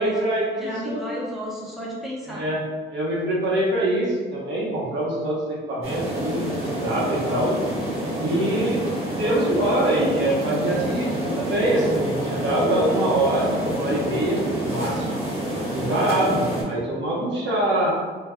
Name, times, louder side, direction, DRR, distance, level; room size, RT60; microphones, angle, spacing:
voice 1, 0.0-0.5 0.8-1.0 2.3-2.6 2.9-6.4 6.8-7.6 8.1-8.8 9.1-15.2 15.7-17.9, right 1 dB, 65° right, -4 dB, 0.8 m, -24 dB
voice 2, 0.5-2.5, equal, ahead, -6 dB, 0.7 m, -32 dB
sound 1, 5.8-16.6, equal, 30° right, 1.2 m, -28 dB
2.2 x 2.1 x 3.5 m, 1.5 s
cardioid pair, 90°, 20 cm